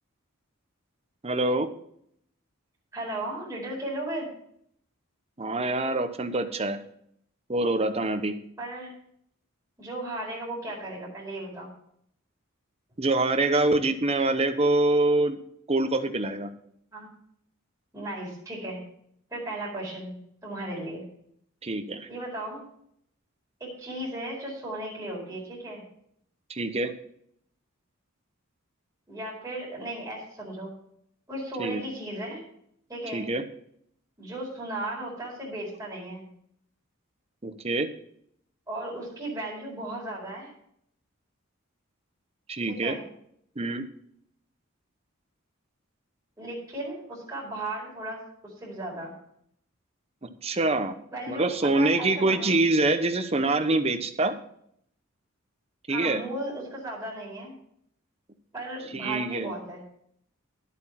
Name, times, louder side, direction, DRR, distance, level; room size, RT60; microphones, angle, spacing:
voice 1, 1.2-1.7 5.4-6.8 7.5-8.3 13.0-15.4 15.7-16.5 21.6-22.1 26.5-26.9 31.6-31.8 33.1-33.4 37.4-37.9 42.5-42.9 43.6-43.8 50.4-51.0 51.3-54.4 55.9-56.2 58.9-59.5, right 2 dB, 30° right, 8 dB, 0.9 m, -25 dB
voice 2, 2.9-4.3 8.6-8.9 9.8-11.7 16.9-17.1 17.9-18.8 19.3-21.1 22.1-22.6 23.6-25.8 29.1-30.7 31.3-32.4 32.9-33.2 34.2-36.3 38.7-40.5 42.6-43.0 46.4-49.1 51.1-52.6 55.9-57.5 58.5-59.8, right 1 dB, 15° right, -6 dB, 4.8 m, -36 dB
11.5 x 8.1 x 5.9 m, 0.69 s
head